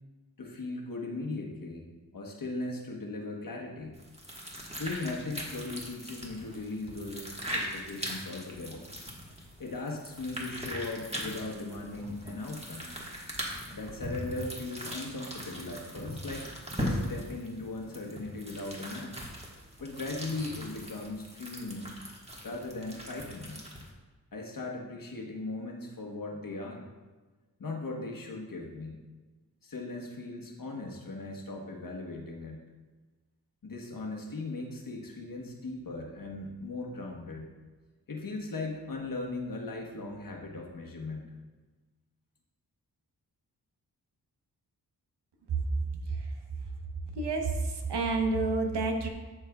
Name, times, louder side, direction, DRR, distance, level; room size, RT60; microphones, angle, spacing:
voice 1, 0.4-4.0 4.8-8.9 9.6-12.9 13.7-16.5 16.8-19.2 19.8-21.9 22.4-23.6 24.3-26.9 27.6-29.0 29.6-32.6 33.6-37.5 38.1-41.3, left 2 dB, 55° left, 0 dB, 1.2 m, -38 dB
sound 1, 3.9-23.9, equal, 15° right, 1.5 m, -40 dB
voice 2, 46.0-46.4 47.1-49.1, right 3 dB, 75° right, 3 dB, 1.0 m, -29 dB
11.5 x 4.4 x 2.3 m, 1.2 s
cardioid pair, 55°, 41 cm